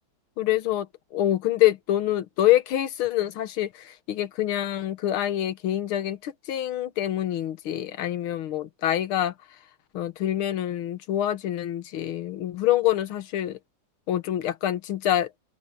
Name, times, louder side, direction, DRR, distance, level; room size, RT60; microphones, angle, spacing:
voice 1, 0.4-9.3 9.9-13.6 14.1-15.4, left 13 dB, 85° left, 1.9 m, -26 dB
omnidirectional pair, 2.2 m